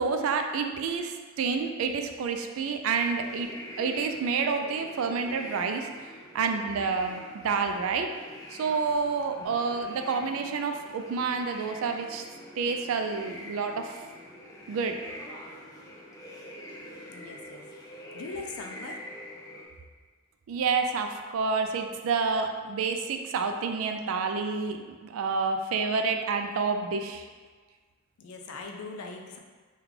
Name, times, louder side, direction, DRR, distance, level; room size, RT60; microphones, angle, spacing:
voice 1, 0.0-3.5 3.8-5.9 6.3-8.1 8.5-12.2 12.6-13.9 14.7-15.0 20.5-27.3, right 5 dB, 75° right, 5 dB, 0.3 m, -29 dB
sound 1, 3.0-19.7, equal, 15° left, 0.3 m, -45 dB
voice 2, 17.1-17.7 17.9-19.0 28.2-29.4, left 3 dB, 90° left, 2 dB, 0.4 m, -41 dB
3.1 x 2.3 x 3.6 m, 1.4 s
head